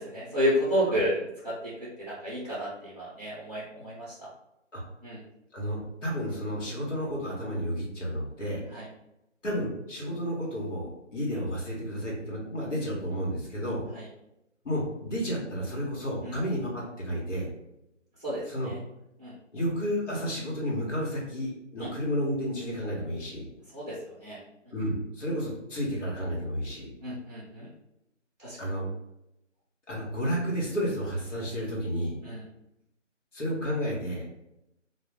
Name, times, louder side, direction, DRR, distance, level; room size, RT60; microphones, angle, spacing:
voice 1, 0.0-1.7 2.0-4.3 5.0-5.2 8.7-8.8 13.9-14.0 16.2-16.3 18.2-18.8 19.2-19.3 21.8-21.9 23.7-24.4 27.0-27.7 28.4-28.6 32.2-32.4, equal, 30° right, -9 dB, 0.6 m, -31 dB
voice 2, 5.5-8.6 9.4-13.8 14.6-17.5 18.4-18.7 19.5-23.5 24.7-26.9 28.6-28.9 29.9-32.1 33.3-34.2, equal, 75° left, -4 dB, 1.1 m, -31 dB
2.3 x 2.2 x 3.4 m, 0.86 s
figure-of-eight pair, 170°, 37 cm